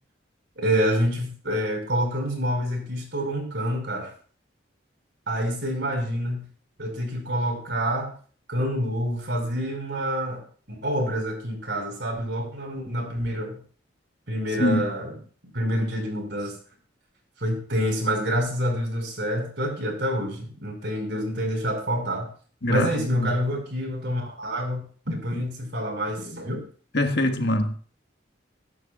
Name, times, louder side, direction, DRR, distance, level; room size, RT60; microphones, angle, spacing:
voice 1, 0.6-4.1 5.3-6.5 6.8-8.1 8.5-13.6 14.3-15.1 15.5-16.5 17.4-22.3 22.7-26.6, equal, 70° right, 5.5 m, -27 dB
voice 2, 22.6-23.3 26.9-27.8, left 1 dB, 65° left, 1.5 m, -24 dB
22.5 x 11.0 x 2.4 m
head